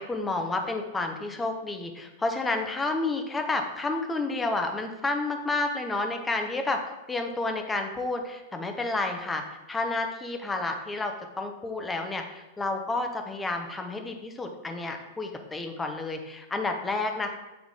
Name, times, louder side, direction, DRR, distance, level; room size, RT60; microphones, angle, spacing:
voice 1, 0.0-6.8 7.1-9.4 9.7-17.3, left 2 dB, 15° left, 4 dB, 1.0 m, -30 dB
8.3 x 3.6 x 3.7 m, 1.1 s
hypercardioid pair, 100°, 0 cm